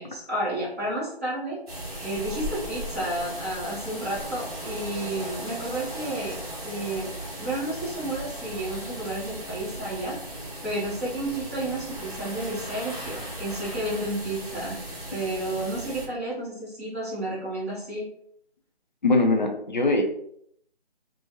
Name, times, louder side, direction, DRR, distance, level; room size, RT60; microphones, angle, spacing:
voice 1, 0.0-6.4 6.6-7.1 7.4-10.2 10.6-14.8 15.1-18.1, right 1 dB, 15° right, -12 dB, 0.9 m, -31 dB
sound 1, 1.7-16.1, right 1 dB, 35° right, 1.5 m, -37 dB
voice 2, 19.0-20.0, left 2 dB, 45° left, 2 dB, 0.5 m, -21 dB
3.3 x 2.1 x 2.9 m, 0.69 s
figure-of-eight pair, 170°, 31 cm